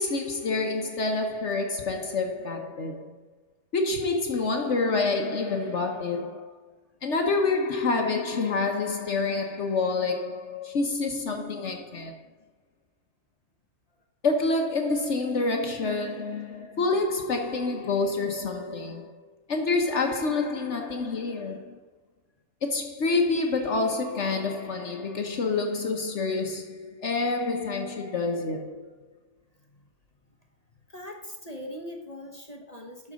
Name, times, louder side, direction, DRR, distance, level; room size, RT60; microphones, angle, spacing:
voice 1, 0.0-3.1 3.7-6.5 7.0-12.1 14.2-19.2 19.5-21.8 22.6-28.9, left 3 dB, 55° left, 1.2 m, -27 dB
voice 2, 11.4-12.2 21.4-21.8 24.9-25.0 27.4-27.6 30.9-33.1, left 1 dB, 30° left, 1.1 m, -43 dB
12.0 x 4.8 x 6.3 m
omnidirectional pair, 1.5 m